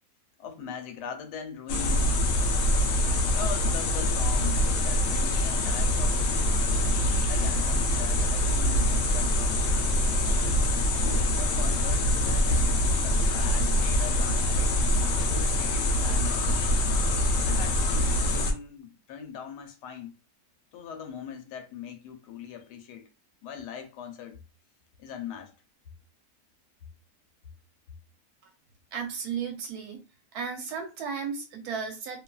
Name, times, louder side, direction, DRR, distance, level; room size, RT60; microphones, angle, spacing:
voice 1, 0.4-2.3 3.3-6.6 7.3-9.6 11.0-14.8 15.1-16.6 17.4-20.1 20.7-23.1 23.4-24.4 25.0-25.5, left 7 dB, 85° left, 1.2 m, -41 dB
sound 1, 1.7-18.5, left 1 dB, 65° left, 0.9 m, -24 dB
voice 2, 28.9-30.0 30.3-32.2, right 6 dB, 75° right, 1.0 m, -34 dB
2.8 x 2.3 x 2.3 m
omnidirectional pair, 1.7 m